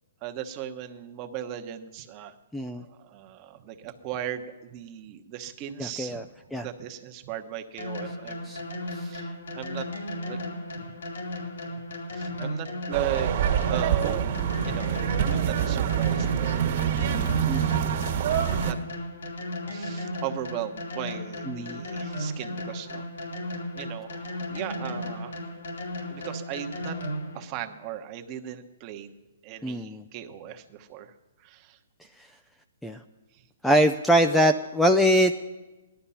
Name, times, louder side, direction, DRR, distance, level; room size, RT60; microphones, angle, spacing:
voice 1, 0.2-2.3 2.7-6.3 6.6-8.5 8.9-9.9 10.3-10.4 12.1-13.3 13.7-17.4 18.5-18.8 19.7-23.0 23.7-25.6 26.1-27.0 27.3-29.1 29.4-31.1 31.4-31.8 33.3-33.8, right 11 dB, 30° right, 5 dB, 1.1 m, -37 dB
voice 2, 5.8-6.2 6.5-6.7 8.5-8.6 17.5-17.8 21.5-21.8 29.6-30.0 32.8-33.0 33.6-35.3, equal, ahead, 6 dB, 0.5 m, -23 dB
sound 1, 7.8-27.4, left 1 dB, 80° left, 3.0 m, -35 dB
sound 2, 12.9-18.7, right 9 dB, 50° right, 1.7 m, -26 dB
17.5 x 11.5 x 5.7 m, 1.1 s
hypercardioid pair, 150°, 0 cm